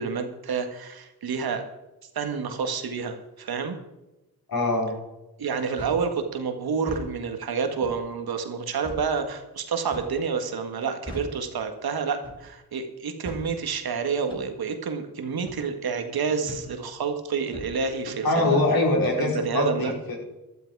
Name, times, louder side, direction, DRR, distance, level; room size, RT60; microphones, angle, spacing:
voice 1, 0.0-1.7 2.2-3.8 5.4-18.6 19.2-19.9, right 5 dB, 80° right, 6 dB, 1.9 m, -29 dB
voice 2, 4.5-4.9 18.2-20.2, left 2 dB, 70° left, -1 dB, 4.9 m, -23 dB
sound 1, 5.8-6.1 6.8-7.1 7.8-8.0 8.8-9.1 9.9-10.2 11.1-11.4 12.2-12.5 13.2-13.5 14.3-14.5 15.5-15.6 16.5-16.7 17.5-17.8, left 1 dB, 15° left, 5.9 m, -39 dB
14.5 x 12.0 x 4.8 m, 1.0 s
cardioid pair, 65°, 36 cm